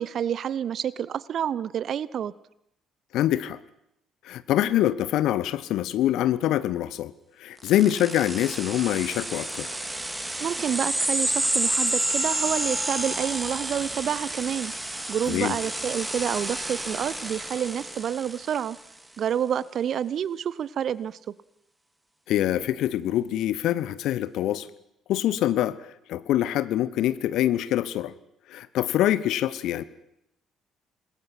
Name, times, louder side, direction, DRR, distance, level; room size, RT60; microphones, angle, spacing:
voice 1, 0.0-2.3 10.4-14.7 15.1-18.8 19.2-21.4, right 9 dB, 50° right, 21 dB, 0.8 m, -28 dB
voice 2, 3.1-3.6 4.2-7.1 7.4-9.7 15.3-15.6 22.3-24.7 25.1-25.8 26.1-28.1 28.5-29.8, left 12 dB, 60° left, 16 dB, 1.0 m, -25 dB
sound 1, 7.6-18.7, right 1 dB, 10° right, 2.9 m, -30 dB
27.0 x 20.5 x 6.0 m, 0.78 s
figure-of-eight pair, 45°, 0 cm